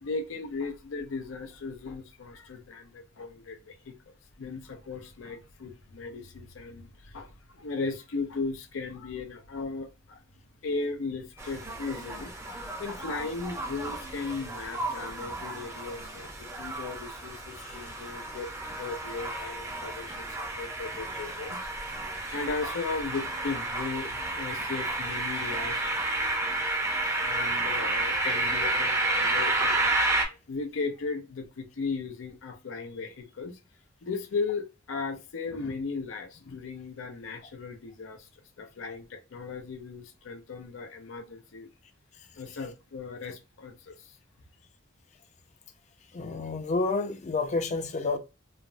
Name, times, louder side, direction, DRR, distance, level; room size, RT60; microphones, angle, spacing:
voice 1, 0.0-10.2 10.6-21.7 22.3-25.8 27.2-29.9 30.3-33.6 34.0-41.7 42.4-44.2, left 4 dB, 85° left, 0.5 m, -37 dB
sound 1, 11.4-30.2, right 2 dB, 15° right, 0.5 m, -31 dB
voice 2, 46.1-48.2, left 3 dB, 35° left, 0.4 m, -29 dB
3.2 x 2.0 x 2.5 m
head